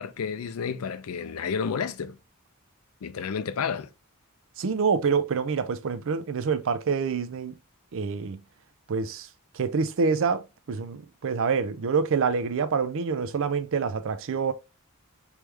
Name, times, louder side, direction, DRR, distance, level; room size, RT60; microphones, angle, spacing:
voice 1, 0.0-2.2 3.0-3.9, left 6 dB, 80° left, 0.4 m, -31 dB
voice 2, 4.6-7.6 7.9-8.4 8.9-9.3 9.5-14.5, right 5 dB, 65° right, 0.4 m, -26 dB
3.4 x 3.1 x 3.2 m
head